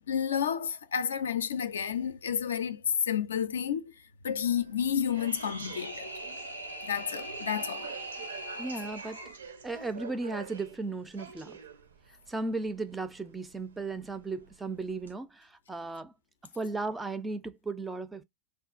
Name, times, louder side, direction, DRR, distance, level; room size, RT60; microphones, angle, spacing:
voice 1, 0.1-3.9 4.2-6.1 6.8-7.9, left 8 dB, 65° left, 0.4 m, -30 dB
sound 1, 4.4-15.1, right 6 dB, 70° right, 0.6 m, -49 dB
sound 2, 4.9-9.4, right 1 dB, 90° right, 0.9 m, -41 dB
voice 2, 8.6-9.2 9.6-11.6 12.3-16.1 16.6-18.2, right 3 dB, 10° right, 0.4 m, -35 dB
3.5 x 2.3 x 2.3 m
figure-of-eight pair, 90°, 0 cm